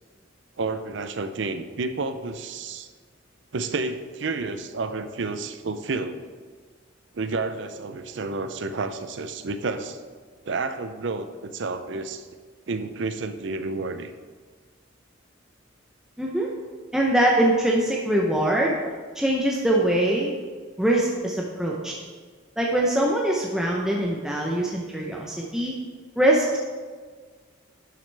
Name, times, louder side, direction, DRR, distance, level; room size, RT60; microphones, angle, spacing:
voice 1, 0.6-2.9 3.5-6.2 7.1-10.0 10.4-12.3 12.7-14.1, right 3 dB, 60° right, 10 dB, 0.5 m, -30 dB
voice 2, 16.2-16.5 16.9-18.7 19.1-20.3 20.8-21.9 22.6-25.7 26.2-26.6, right 1 dB, 5° right, -3 dB, 0.7 m, -23 dB
10.5 x 6.4 x 3.4 m, 1.5 s
head